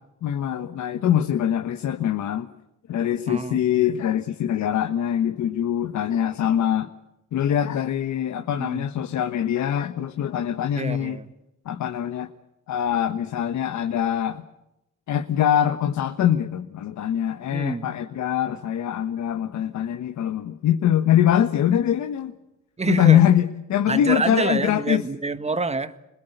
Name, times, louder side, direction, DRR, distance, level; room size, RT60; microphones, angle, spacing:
voice 1, 0.2-2.5 2.9-6.9 7.3-11.2 11.6-12.3 12.7-14.4 15.1-22.4 22.9-25.0, left 10 dB, 70° left, 7 dB, 1.3 m, -23 dB
voice 2, 3.3-3.6 8.6-8.9 10.8-11.3 17.5-17.9 22.8-23.2 23.9-26.1, right 3 dB, 20° right, 11 dB, 1.6 m, -27 dB
28.0 x 20.5 x 8.1 m, 0.92 s
cardioid pair, 90°, 30 cm